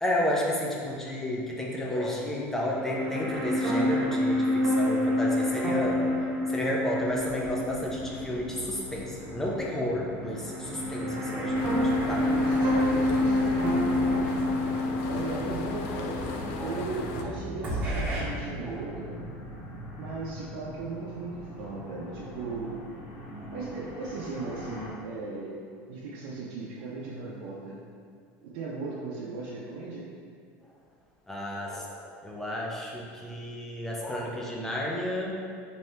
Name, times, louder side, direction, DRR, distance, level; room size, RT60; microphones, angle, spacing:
voice 1, 0.0-6.0 6.5-12.4 16.6-16.8 17.2-17.4 17.7-17.8 18.6-18.8 31.3-35.3, left 1 dB, 5° left, -3 dB, 0.5 m, -32 dB
sound 1, 2.6-8.8 9.2-9.3 10.3-17.3 17.6-18.2, left 1 dB, 25° right, 0.8 m, -28 dB
sound 2, 7.0-24.9, equal, 50° left, 1.4 m, -41 dB
sound 3, 11.5-17.2, left 4 dB, 65° left, 0.4 m, -36 dB
voice 2, 12.2-14.4 15.1-19.2 20.0-22.8 23.5-25.5 25.9-27.8 28.4-30.1, right 3 dB, 70° right, -6 dB, 0.6 m, -37 dB
3.2 x 2.7 x 4.3 m, 2.2 s
cardioid pair, 160°, 6 cm